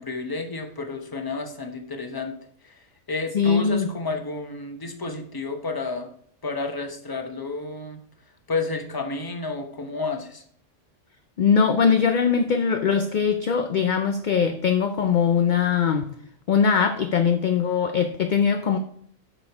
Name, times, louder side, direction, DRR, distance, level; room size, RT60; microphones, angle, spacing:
voice 1, 0.0-2.4 2.6-6.1 6.4-8.0 8.5-10.4, left 3 dB, 20° left, 5 dB, 0.9 m, -31 dB
voice 2, 3.3-3.9 11.4-16.1 16.5-18.8, left 6 dB, 50° left, 6 dB, 0.6 m, -21 dB
7.8 x 6.3 x 4.8 m, 0.65 s
omnidirectional pair, 1.3 m